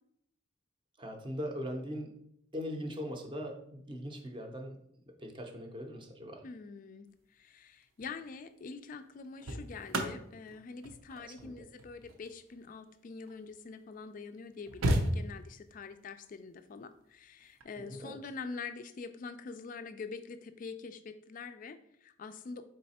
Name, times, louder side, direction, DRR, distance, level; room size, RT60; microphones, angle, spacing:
voice 1, 1.0-2.1 2.5-4.8 5.1-6.4 11.2-11.7 17.8-18.2, equal, 25° right, 3 dB, 0.6 m, -40 dB
voice 2, 6.4-22.6, left 4 dB, 40° left, 10 dB, 0.3 m, -45 dB
sound 1, 7.8-8.1 9.0-13.6 14.2-14.3 14.4-15.7 17.4-17.6, right 1 dB, 85° right, 0.7 m, -35 dB
4.0 x 3.3 x 4.1 m, 0.72 s
head